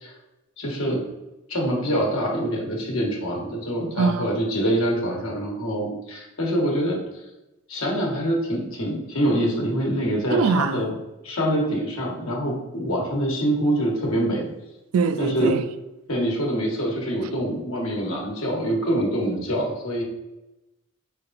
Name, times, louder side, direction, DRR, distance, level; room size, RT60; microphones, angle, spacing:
voice 1, 0.6-1.0 1.5-7.0 7.7-10.9 11.2-14.5 15.2-15.6 16.1-20.0, equal, 80° left, 1.2 m, -25 dB
voice 2, 4.0-4.3 10.3-10.8 14.9-15.6, right 5 dB, 80° right, 0.3 m, -22 dB
4.8 x 3.2 x 2.5 m
head